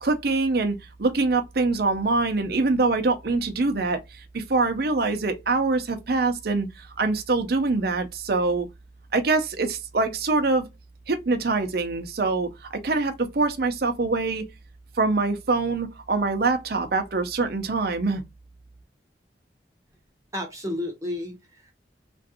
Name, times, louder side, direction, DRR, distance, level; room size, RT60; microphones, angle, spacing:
voice 1, 0.0-8.7 9.1-10.7 11.1-14.4 15.0-18.2, right 3 dB, 55° right, 0.6 m, -24 dB
voice 2, 20.3-21.7, left 1 dB, 15° right, 0.9 m, -32 dB
3.1 x 2.6 x 2.7 m
head